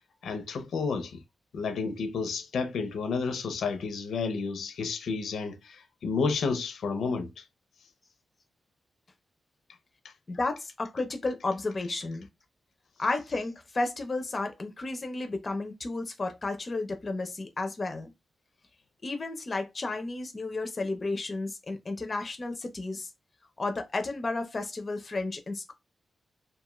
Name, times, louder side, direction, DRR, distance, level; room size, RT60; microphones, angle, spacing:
voice 1, 0.2-1.2 1.5-7.4, left 4 dB, 80° left, 0.5 m, -31 dB
voice 2, 10.3-12.3 13.0-18.1 19.0-23.1 23.6-25.7, left 2 dB, 30° left, 0.4 m, -32 dB
2.6 x 2.3 x 2.9 m
wide cardioid pair, 160°, 0 cm